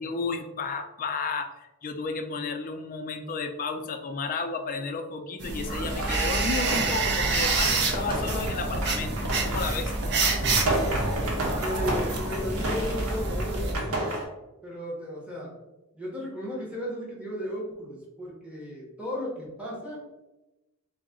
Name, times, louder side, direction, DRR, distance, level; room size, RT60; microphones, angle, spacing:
voice 1, 0.0-9.2 9.4-9.9, left 4 dB, 40° left, 6 dB, 0.4 m, -32 dB
sound 1, 5.4-13.7, right 3 dB, 50° right, 0.6 m, -28 dB
sound 2, 5.7-14.2, right 1 dB, 75° right, 0.9 m, -31 dB
voice 2, 11.6-14.0 14.6-15.5 15.9-20.0, equal, 5° right, -5 dB, 0.8 m, -35 dB
3.8 x 2.0 x 3.6 m, 1.0 s
head